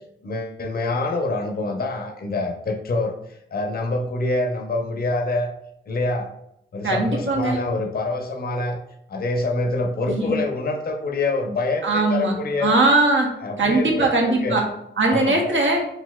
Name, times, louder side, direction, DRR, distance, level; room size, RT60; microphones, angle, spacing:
voice 1, 0.2-3.1 3.5-5.5 5.9-6.3 6.7-8.8 9.1-12.7 13.4-14.1 14.4-14.6 15.1-15.4, left 2 dB, 45° left, 3 dB, 0.5 m, -25 dB
voice 2, 6.8-7.6 10.1-10.4 11.8-12.3 12.6-13.3 13.6-14.6 15.0-15.8, right 2 dB, 70° right, 0 dB, 0.7 m, -20 dB
3.9 x 2.5 x 2.3 m, 0.78 s
wide cardioid pair, 75°, 21 cm